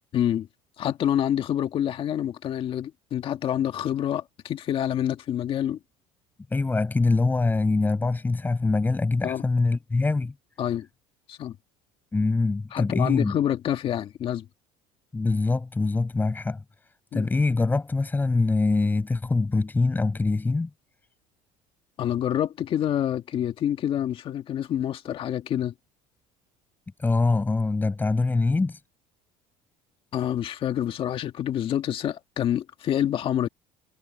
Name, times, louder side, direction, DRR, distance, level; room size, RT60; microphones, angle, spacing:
voice 1, 0.1-0.5 0.8-5.8 9.2-9.4 10.6-10.9 11.3-11.6 12.7-14.5 17.1-17.3 22.0-25.7 30.1-33.5, left 10 dB, 45° left, 1.9 m, -27 dB
voice 2, 6.5-10.3 12.1-13.4 15.1-16.6 17.1-20.7 27.0-28.8, left 3 dB, 15° left, 6.4 m, -24 dB
cardioid pair, 130°, 13 cm